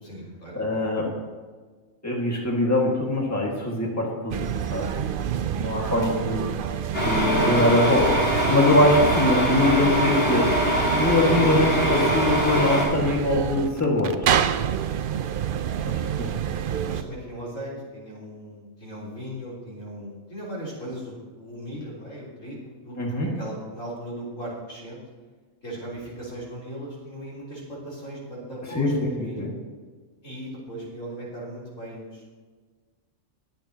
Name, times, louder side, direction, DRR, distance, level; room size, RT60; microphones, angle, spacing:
voice 1, 0.0-0.9 14.0-14.1 16.9-25.0 25.6-29.5 30.2-32.3, right 1 dB, 85° left, -6 dB, 4.2 m, -38 dB
voice 2, 0.5-1.1 2.0-4.4 4.7-4.9 5.5-6.4 6.9-8.2 8.5-10.5 10.9-14.3 15.9-16.3 23.0-23.3 28.7-29.5, left 1 dB, 10° left, -2 dB, 1.9 m, -23 dB
sound 1, 4.3-17.0, right 9 dB, 60° right, 0.6 m, -28 dB
sound 2, 6.9-12.8, equal, 60° left, 4.3 m, -23 dB
20.5 x 8.7 x 2.9 m, 1.5 s
omnidirectional pair, 1.3 m